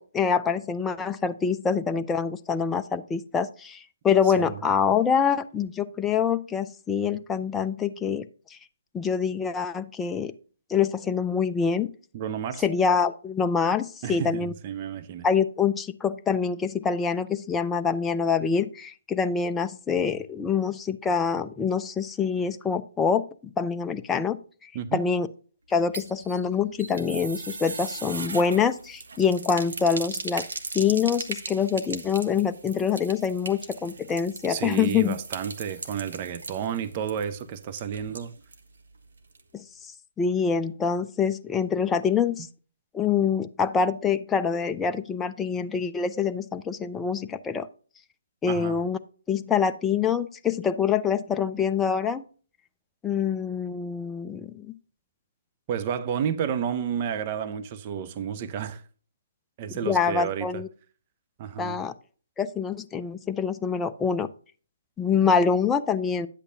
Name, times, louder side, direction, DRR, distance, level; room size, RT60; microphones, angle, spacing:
voice 1, 0.0-8.2 8.5-8.6 8.9-10.3 10.7-11.9 12.6-14.5 15.2-24.4 24.6-25.3 25.7-30.4 30.7-35.2 39.5-39.6 40.2-42.5 42.9-47.7 48.4-49.0 49.3-52.2 53.0-54.7 59.8-60.7 61.6-61.9 62.4-64.3 65.0-66.3, left 6 dB, 10° left, 0.5 m, -25 dB
voice 2, 4.3-4.6 12.1-12.6 14.0-15.3 24.7-25.1 34.5-38.3 48.4-48.8 55.7-58.8 59.6-60.6 61.4-61.8, right 8 dB, 35° right, 0.7 m, -31 dB
sound 1, 25.7-38.7 39.0-39.1 39.3-39.4, right 4 dB, 70° right, 1.6 m, -38 dB
9.9 x 8.2 x 2.7 m
figure-of-eight pair, 145°, 0 cm